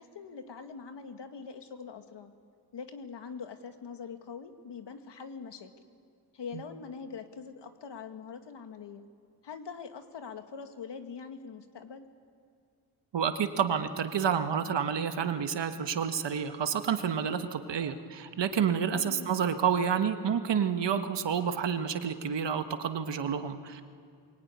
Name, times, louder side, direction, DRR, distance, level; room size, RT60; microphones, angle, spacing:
voice 1, 0.0-2.3 2.7-5.7 6.3-9.1 9.4-12.1 18.9-19.3, left 6 dB, 70° left, 7 dB, 1.7 m, -43 dB
voice 2, 13.1-23.8, right 7 dB, 75° right, 8 dB, 1.4 m, -29 dB
22.5 x 22.5 x 9.6 m, 2.3 s
wide cardioid pair, 170°, 43 cm